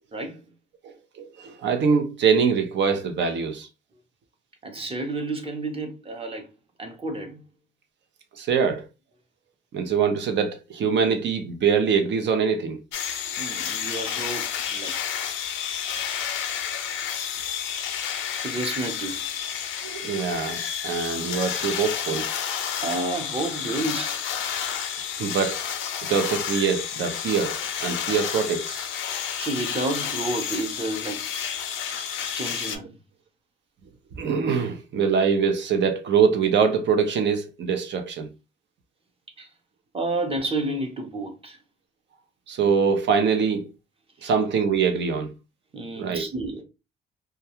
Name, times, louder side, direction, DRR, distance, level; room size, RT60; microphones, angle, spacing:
voice 1, 0.1-0.4 4.6-6.5 6.8-7.4 13.4-14.9 18.4-19.4 22.8-24.2 29.4-31.3 32.3-33.0 39.4-39.5 39.9-41.6 44.2-44.3 45.7-46.6, right 2 dB, 30° right, 0.8 m, -30 dB
voice 2, 0.8-3.7 8.4-8.9 9.7-12.8 19.8-22.3 25.2-25.6 26.0-28.9 34.2-38.3 42.5-43.7 44.2-45.3 46.0-46.3, right 6 dB, 65° right, 0.7 m, -24 dB
sound 1, 12.9-32.8, left 8 dB, 80° left, 0.5 m, -30 dB
2.3 x 2.3 x 2.8 m
cardioid pair, 90°, 20 cm